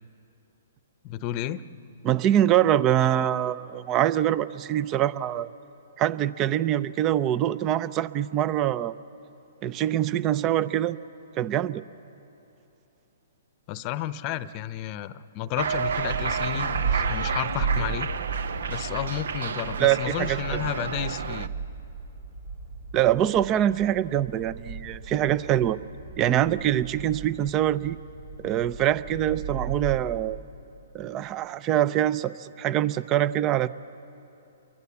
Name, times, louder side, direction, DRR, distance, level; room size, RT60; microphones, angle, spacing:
voice 1, 1.0-1.6 13.7-18.1 18.7-21.5, left 12 dB, 35° left, 15 dB, 0.8 m, -32 dB
voice 2, 2.0-5.5 6.0-9.0 9.6-11.0 11.4-11.8 19.8-20.6 22.9-25.8 26.2-28.0 28.4-30.4 30.9-33.7, right 11 dB, 30° right, 17 dB, 0.6 m, -24 dB
Cheering, 15.6-21.5, right 6 dB, 70° right, 0.7 m, -31 dB
sound 1, 15.6-30.5, right 5 dB, 85° right, 6.2 m, -35 dB
29.0 x 23.0 x 7.1 m, 2.8 s
hypercardioid pair, 135°, 0 cm